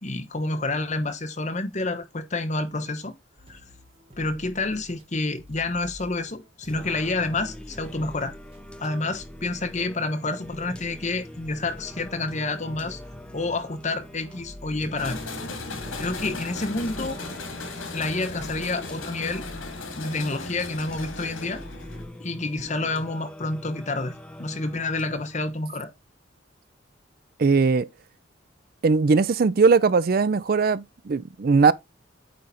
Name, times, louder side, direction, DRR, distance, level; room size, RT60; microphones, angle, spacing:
voice 1, 0.0-3.1 3.5-3.6 4.2-8.3 8.8-13.0 13.3-15.2 16.0-17.2 17.9-19.4 20.0-21.6 22.2-25.9, left 2 dB, 35° left, 1.1 m, -29 dB
sound 1, 3.4-5.1 5.4-22.1, equal, 30° right, 1.4 m, -47 dB
Singing, 6.7-25.7, left 1 dB, 5° left, 0.7 m, -44 dB
sound 2, 15.0-22.1, left 3 dB, 80° left, 2.9 m, -36 dB
voice 2, 27.4-27.9 28.8-31.7, right 4 dB, 50° right, 0.4 m, -19 dB
8.7 x 3.9 x 4.2 m
head